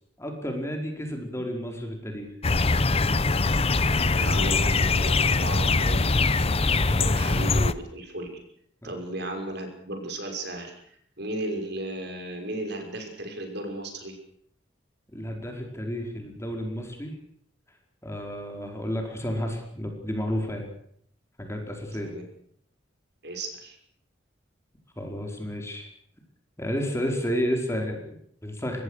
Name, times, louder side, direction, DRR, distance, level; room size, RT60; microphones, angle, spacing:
voice 1, 0.2-2.3 6.9-7.0 8.8-8.9 15.1-17.1 18.0-20.7 21.4-22.1 25.0-25.9 26.6-28.8, equal, 15° left, 2 dB, 4.9 m, -31 dB
sound 1, 2.4-7.7, left 3 dB, 30° left, 0.9 m, -22 dB
voice 2, 4.1-6.1 6.9-8.3 8.8-14.2 21.9-22.2 23.2-23.8, right 1 dB, 60° right, 4 dB, 5.9 m, -35 dB
25.0 x 20.5 x 6.6 m, 0.65 s
head